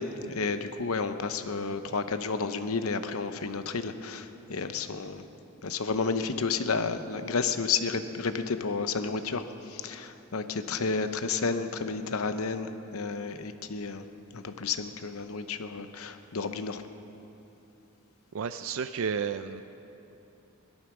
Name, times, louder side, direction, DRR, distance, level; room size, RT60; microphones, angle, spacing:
voice 1, 0.0-5.2 5.6-9.4 9.7-14.0 14.3-16.8, left 4 dB, 85° left, 9 dB, 0.8 m, -31 dB
voice 2, 18.3-19.6, right 6 dB, 70° right, 10 dB, 0.4 m, -32 dB
17.5 x 12.5 x 6.1 m, 2.9 s
head